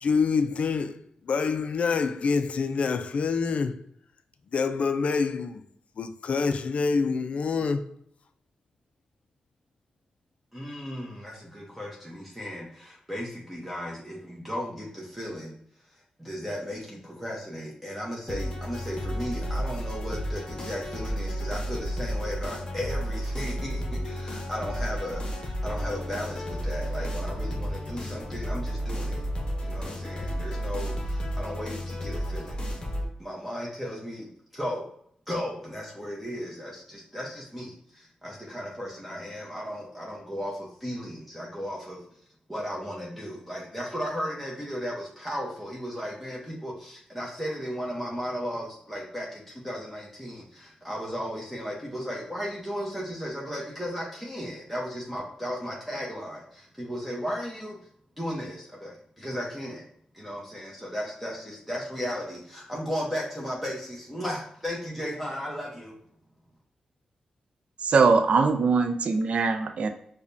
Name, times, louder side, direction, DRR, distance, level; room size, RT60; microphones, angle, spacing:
voice 1, 0.0-3.8 4.5-5.6 6.0-7.9, left 5 dB, 60° left, 0.3 m, -26 dB
voice 2, 10.5-15.5 15.9-29.3 29.6-32.6 33.2-34.9 35.3-42.0 42.5-57.8 58.2-59.8 60.1-65.9, equal, 5° right, 0.8 m, -35 dB
sound 1, 18.3-33.1, equal, 40° left, 0.8 m, -32 dB
voice 3, 67.8-69.9, right 4 dB, 60° right, 0.4 m, -22 dB
4.9 x 2.2 x 2.6 m
cardioid pair, 80°, 2 cm